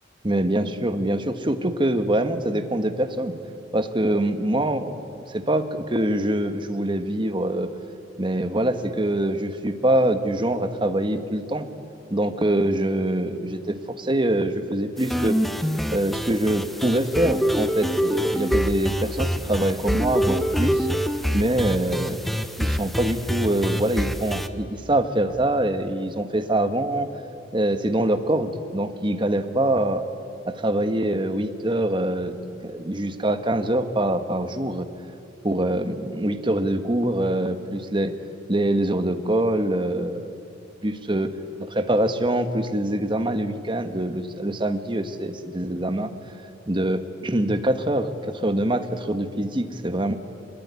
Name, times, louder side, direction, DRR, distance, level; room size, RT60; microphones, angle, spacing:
voice 1, 0.2-3.3 3.7-5.0 5.3-7.7 8.2-11.7 12.1-15.4 15.9-20.9 21.3-22.2 22.6-27.1 27.5-30.0 30.5-32.4 32.6-34.9 35.4-38.1 38.5-40.3 40.8-41.3 41.7-46.1 46.7-50.1, right 1 dB, 25° right, 8 dB, 1.4 m, -24 dB
sound 1, 15.0-24.5, equal, ahead, 1.0 m, -25 dB
26.5 x 21.0 x 9.7 m, 2.5 s
head